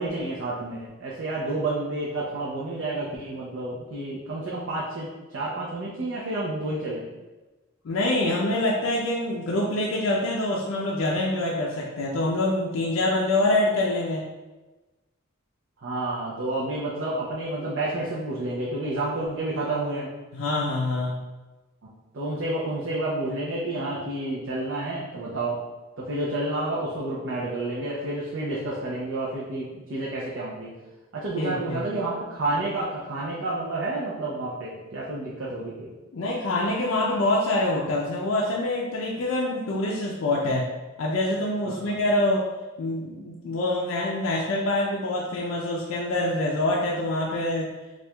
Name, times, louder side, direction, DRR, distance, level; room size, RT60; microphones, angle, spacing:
voice 1, 0.0-7.0 15.8-20.1 21.8-21.9 22.1-25.6 26.0-30.7 31.1-35.9 41.7-41.9, right 2 dB, 65° right, -6 dB, 0.6 m, -30 dB
voice 2, 7.8-14.3 20.3-21.2 31.4-31.8 36.1-40.7 41.0-42.5 42.8-47.7, left 1 dB, 75° left, -3 dB, 0.4 m, -25 dB
4.3 x 2.4 x 2.2 m, 1.2 s
head